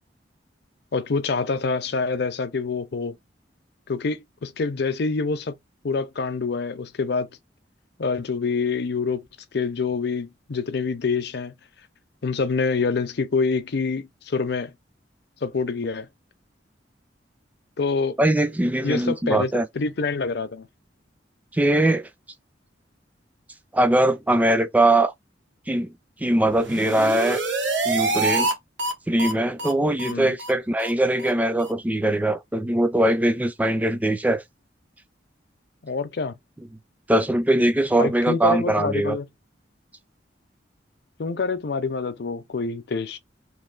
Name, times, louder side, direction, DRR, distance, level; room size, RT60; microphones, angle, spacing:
voice 1, 0.9-3.1 3.9-5.6 5.8-7.3 8.0-9.2 9.5-11.5 12.2-14.7 15.4-16.1 17.8-18.2 18.8-20.7 30.0-30.3 35.8-36.4 38.0-39.3 41.2-43.2, left 4 dB, 60° left, 0.6 m, -26 dB
voice 2, 18.2-19.7 21.5-22.1 23.7-25.1 25.7-25.9 26.2-27.4 27.9-28.5 29.1-34.4 37.1-39.2, right 1 dB, 10° right, 0.4 m, -21 dB
sound 1, 26.5-28.5 28.8-28.9 29.2-29.3 29.6-29.7 30.0-30.1 30.4-30.5 30.8-30.9 31.2-31.3 31.6-31.7, right 3 dB, 85° right, 1.0 m, -26 dB
3.1 x 2.6 x 3.9 m
head